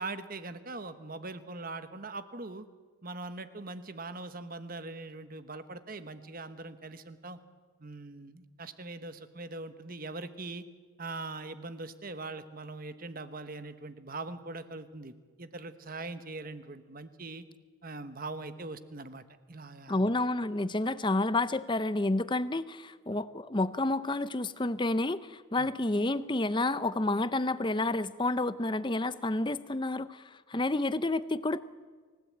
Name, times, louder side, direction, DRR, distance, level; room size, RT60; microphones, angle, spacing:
voice 1, 0.0-2.7 3.0-7.4 7.8-10.6 11.0-17.4 17.8-20.1 23.1-23.2 25.6-25.7 30.5-30.6, right 3 dB, 40° right, 11 dB, 1.2 m, -42 dB
voice 2, 19.9-31.6, left 2 dB, 20° left, 14 dB, 0.6 m, -30 dB
28.0 x 16.5 x 8.7 m, 1.5 s
head